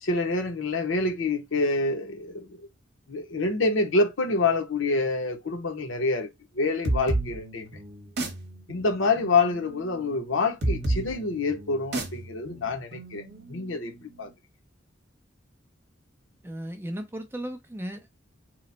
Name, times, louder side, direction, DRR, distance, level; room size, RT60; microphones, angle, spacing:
voice 1, 0.0-2.6 3.1-6.3 6.5-7.7 8.7-13.2 13.5-13.9 14.2-14.3, left 3 dB, 70° left, 0.8 m, -26 dB
sound 1, 6.8-14.2, right 2 dB, 55° right, 0.9 m, -32 dB
voice 2, 16.4-18.1, equal, 10° right, 0.5 m, -36 dB
3.0 x 2.1 x 3.9 m
head